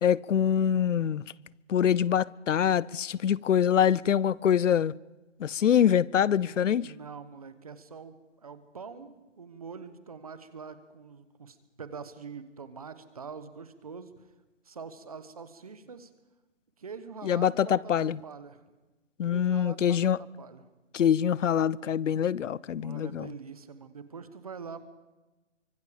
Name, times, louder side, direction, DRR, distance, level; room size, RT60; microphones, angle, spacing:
voice 1, 0.0-1.2 1.7-4.9 5.4-6.9 17.2-18.2 19.2-20.2 20.9-23.3, left 9 dB, 85° left, 0.6 m, -24 dB
voice 2, 6.1-14.3 14.6-16.1 16.8-18.6 19.3-20.7 22.7-24.8, right 5 dB, 30° right, 1.1 m, -45 dB
24.5 x 23.5 x 5.1 m
hypercardioid pair, 180°, 36 cm